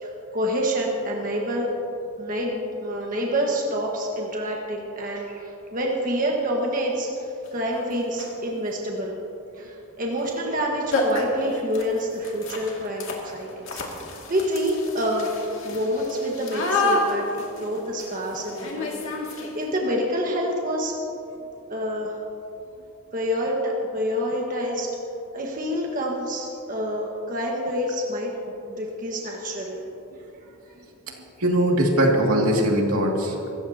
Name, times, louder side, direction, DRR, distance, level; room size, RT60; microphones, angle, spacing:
voice 1, 0.0-1.7 2.2-9.2 9.5-13.8 14.3-21.0 21.7-22.2 23.1-24.9 25.3-29.8 30.7-30.8, equal, 40° right, -1 dB, 1.5 m, -27 dB
sound 1, 7.4-7.5 8.1-8.5 10.2-10.3 10.6-10.7 10.9-19.8, left 2 dB, 60° left, 2.4 m, -29 dB
voice 2, 31.4-33.5, right 1 dB, 80° right, -1 dB, 2.4 m, -21 dB
25.0 x 14.5 x 2.9 m, 2.9 s
head